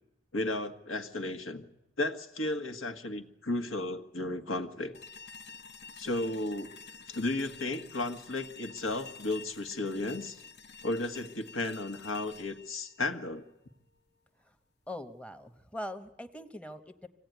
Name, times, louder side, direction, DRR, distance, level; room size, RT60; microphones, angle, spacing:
voice 1, 0.3-1.6 2.0-4.9 6.0-6.7 7.1-10.4 10.8-13.5, left 2 dB, 85° left, 7 dB, 1.6 m, -34 dB
sound 1, 4.9-14.0, left 5 dB, 55° left, 0.9 m, -49 dB
voice 2, 14.9-17.1, left 1 dB, 5° left, 7 dB, 0.9 m, -42 dB
24.5 x 16.5 x 9.3 m, 0.90 s
head